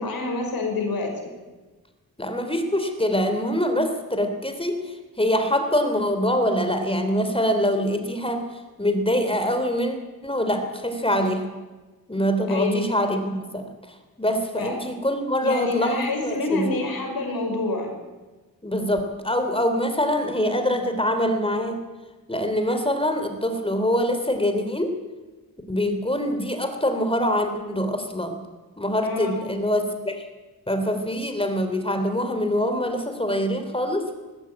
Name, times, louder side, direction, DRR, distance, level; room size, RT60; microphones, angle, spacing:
voice 1, 0.0-1.3 12.5-12.9 14.6-14.8 15.4-17.9 29.0-29.4, left 3 dB, 75° left, 3 dB, 5.7 m, -27 dB
voice 2, 2.2-8.4 8.8-10.0 10.2-11.4 12.1-13.7 14.2-16.8 18.6-21.8 22.3-24.9 25.7-28.3 28.8-30.2 30.7-34.1, equal, 15° left, 6 dB, 3.4 m, -24 dB
20.0 x 16.5 x 8.9 m, 1.2 s
cardioid pair, 80°, 36 cm